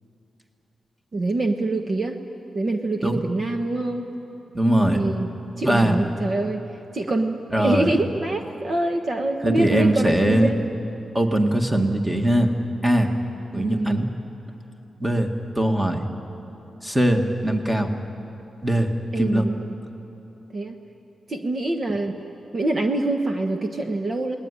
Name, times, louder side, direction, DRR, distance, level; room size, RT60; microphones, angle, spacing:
voice 1, 1.1-2.2 2.5-4.1 4.9-6.6 6.9-10.6 13.5-14.0 19.1-19.7 20.5-20.7 21.3-22.2 22.5-24.4, right 2 dB, 40° right, 4 dB, 1.3 m, -25 dB
voice 2, 4.5-5.0 5.6-6.0 7.5-8.0 9.4-10.5 11.1-12.5 12.8-13.1 13.5-14.1 15.0-16.0 16.8-17.9 18.6-19.5, right 1 dB, 10° right, 4 dB, 2.0 m, -21 dB
29.0 x 19.5 x 10.0 m, 2.9 s
wide cardioid pair, 135°, 0 cm